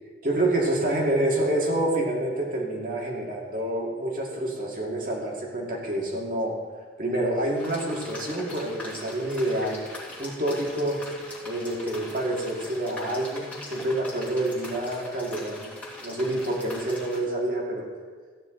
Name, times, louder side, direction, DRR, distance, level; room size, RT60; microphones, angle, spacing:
voice 1, 0.2-6.6 7.0-9.8 10.2-11.0 11.4-15.7 16.0-17.9, right 1 dB, 50° right, -2 dB, 2.2 m, -27 dB
sound 1, 7.5-17.2, left 1 dB, 10° left, 2.2 m, -41 dB
14.5 x 9.5 x 3.9 m, 1.5 s
head